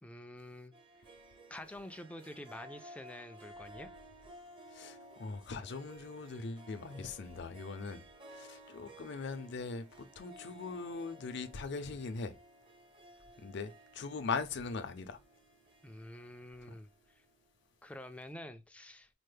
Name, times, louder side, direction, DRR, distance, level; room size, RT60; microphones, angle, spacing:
voice 1, 0.0-0.7 1.5-3.9 15.8-17.2 17.8-19.1, left 1 dB, 5° left, 0.3 m, -48 dB
Harp, 0.7-17.5, right 1 dB, 30° right, 0.7 m, -56 dB
voice 2, 4.7-8.0 8.3-12.3 13.4-15.2, left 4 dB, 60° left, 0.5 m, -40 dB
4.2 x 2.1 x 3.2 m
head